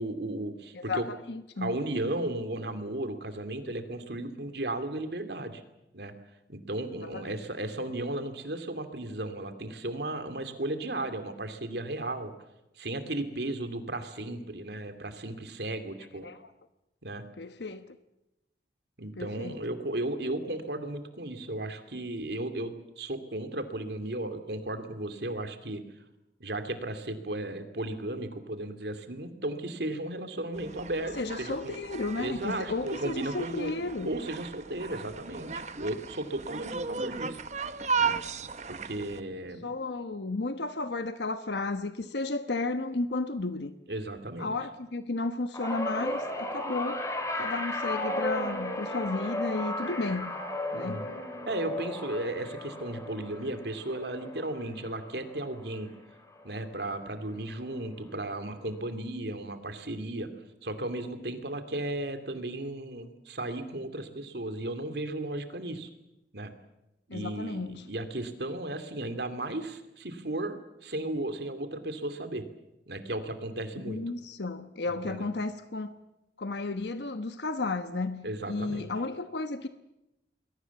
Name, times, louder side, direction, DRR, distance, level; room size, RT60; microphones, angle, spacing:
voice 1, 0.0-1.1 1.6-5.6 5.9-6.1 6.5-12.3 12.8-16.3 17.0-17.2 19.0-25.8 26.4-31.7 32.1-33.7 34.0-37.4 38.0-38.2 38.7-39.7 43.9-44.6 50.7-51.1 51.5-55.9 56.4-60.3 60.6-65.9 66.3-66.5 67.1-72.4 72.9-74.0 75.0-75.3 78.2-78.9, right 1 dB, 70° right, 2.6 m, -35 dB
voice 2, 0.7-1.8 7.0-7.2 16.2-16.5 17.4-17.9 19.2-19.5 31.2-34.1 39.6-43.7 44.4-47.0 47.4-50.3 50.7-51.0 67.1-67.9 73.8-75.9 76.4-79.7, left 3 dB, 80° left, 1.1 m, -33 dB
sound 1, 30.5-39.2, right 5 dB, 40° right, 0.9 m, -36 dB
sound 2, 45.5-56.0 56.3-56.7 57.9-58.0, left 1 dB, 15° left, 3.4 m, -35 dB
27.0 x 21.5 x 7.2 m
head